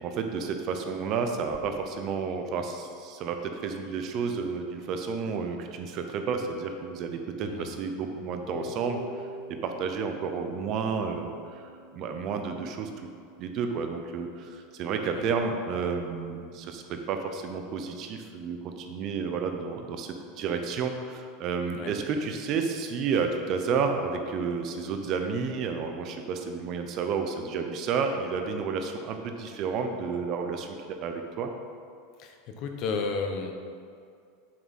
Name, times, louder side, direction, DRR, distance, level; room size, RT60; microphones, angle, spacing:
voice 1, 0.0-9.0 9.5-11.7 11.9-12.9 13.4-31.5, right 5 dB, 35° right, 5 dB, 0.7 m, -31 dB
Harp, 8.5-14.6, equal, 80° left, 1.6 m, -46 dB
voice 2, 32.2-33.5, left 4 dB, 40° left, 4 dB, 0.9 m, -33 dB
8.9 x 7.3 x 4.2 m, 2.3 s
supercardioid pair, 170°, 0 cm